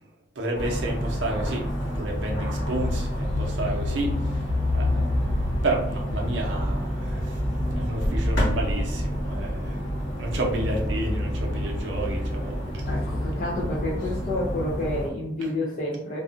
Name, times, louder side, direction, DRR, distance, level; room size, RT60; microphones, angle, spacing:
voice 1, 0.4-4.2 4.7-7.4 7.8-9.8 10.2-12.8, right 2 dB, 70° right, 0 dB, 0.6 m, -31 dB
sound 1, 0.5-15.1, left 1 dB, 85° left, 1.0 m, -27 dB
voice 2, 12.9-16.2, left 1 dB, 40° left, -6 dB, 0.4 m, -29 dB
2.5 x 2.3 x 2.4 m, 0.74 s
head